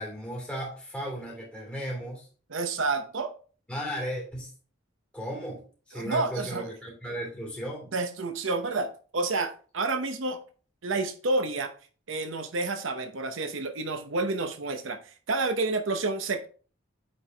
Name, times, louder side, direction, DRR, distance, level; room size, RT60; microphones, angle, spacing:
voice 1, 0.0-2.3 3.7-4.5 5.1-5.6 5.9-7.9, equal, 5° left, 3.0 m, -35 dB
voice 2, 2.5-3.3 5.9-6.7 7.9-10.4 10.8-11.7 12.1-16.5, right 3 dB, 80° right, 0.8 m, -29 dB
8.8 x 4.6 x 3.3 m
head